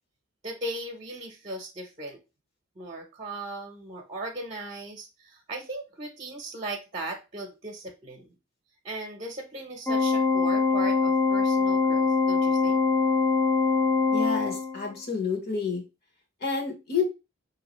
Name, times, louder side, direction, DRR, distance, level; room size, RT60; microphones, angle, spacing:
voice 1, 0.4-2.2 2.8-8.3 8.8-12.8, right 2 dB, 35° right, 1 dB, 0.8 m, -38 dB
Organ, 9.9-14.9, left 4 dB, 10° left, 0.6 m, -23 dB
voice 2, 14.1-15.8 16.4-17.0, left 5 dB, 55° left, 3 dB, 1.3 m, -29 dB
4.8 x 2.8 x 3.0 m, 0.26 s
head